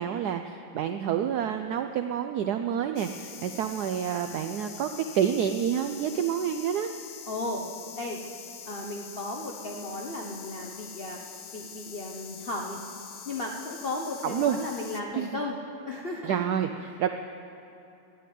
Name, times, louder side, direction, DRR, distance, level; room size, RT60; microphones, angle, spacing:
voice 1, 0.0-6.9 14.2-14.6 15.1-15.3 16.2-17.1, right 9 dB, 85° right, 7 dB, 0.8 m, -28 dB
sound 1, 3.0-15.0, left 8 dB, 70° left, 1.5 m, -44 dB
voice 2, 7.3-7.7 8.0-8.2 8.7-11.2 11.5-12.8 13.2-15.6 15.8-16.5, left 2 dB, 45° left, 0 dB, 0.8 m, -35 dB
12.5 x 9.3 x 9.3 m, 2.9 s
omnidirectional pair, 2.3 m